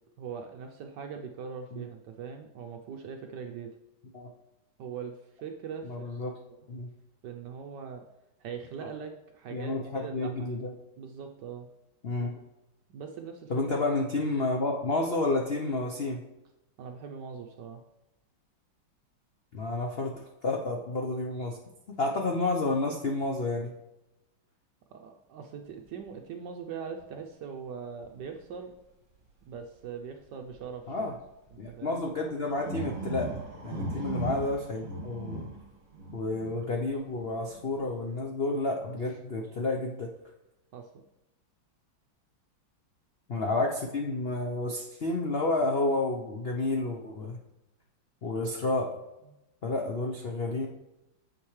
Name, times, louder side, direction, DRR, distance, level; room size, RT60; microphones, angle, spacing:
voice 1, 0.2-3.7 4.8-6.2 7.2-8.0 8.4-10.5 11.0-11.7 12.9-13.6 16.8-17.8 24.9-28.7 29.5-31.2 31.5-32.1 33.6-34.1 40.7-40.9, right 6 dB, 70° right, 4 dB, 1.1 m, -41 dB
voice 2, 5.8-6.3 6.7-6.9 9.5-10.7 12.0-12.4 13.5-16.2 19.5-20.1 20.4-21.6 22.0-23.7 30.9-31.1 31.6-33.3 33.6-35.5 36.1-40.1 43.3-47.4 48.2-48.9 49.6-50.7, left 2 dB, 85° left, 1 dB, 0.5 m, -30 dB
sound 1, 27.0-27.1 28.0-28.1 29.5-29.6 30.5-30.7 31.5-31.7 32.4-36.8 37.1-37.9, right 1 dB, 40° right, 2.0 m, -38 dB
8.8 x 7.2 x 3.2 m, 0.93 s
omnidirectional pair, 2.2 m